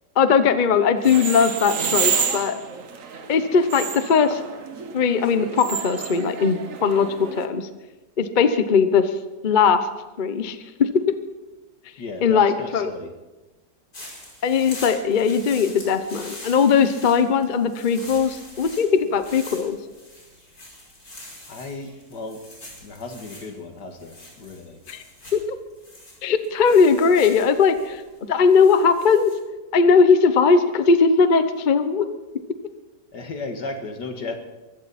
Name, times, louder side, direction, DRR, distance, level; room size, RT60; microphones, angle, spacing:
voice 1, 0.2-2.5 3.3-4.4 4.9-7.7 8.2-9.1 9.4-9.9 10.2-11.1 12.2-12.9 14.4-19.8 24.9-25.0 25.3-25.6 26.2-28.0 28.3-29.3 29.7-32.1, left 5 dB, 35° left, 10 dB, 0.8 m, -19 dB
sound 1, 1.0-7.5, right 6 dB, 55° right, 1.5 m, -29 dB
voice 2, 12.0-13.1 21.5-22.4 22.8-24.8 33.1-34.4, left 3 dB, 75° left, 5 dB, 2.3 m, -35 dB
sound 2, 13.9-29.4, left 1 dB, 55° left, 5.7 m, -43 dB
23.0 x 15.0 x 4.2 m, 1.1 s
omnidirectional pair, 1.8 m